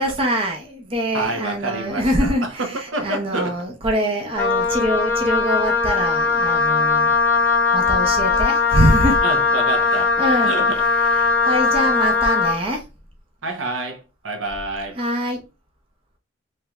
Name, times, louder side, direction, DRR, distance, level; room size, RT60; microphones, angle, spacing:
voice 1, 0.0-9.2 9.9-10.6 11.0-12.8 15.0-15.4, equal, 30° right, 0.6 m, -24 dB
voice 2, 1.1-3.5 9.2-10.1 10.4-10.8 13.4-15.0, right 2 dB, 75° right, 0.8 m, -28 dB
Wind instrument woodwind instrument, 4.3-12.6, left 4 dB, 10° left, 0.9 m, -19 dB
3.2 x 3.0 x 2.3 m
head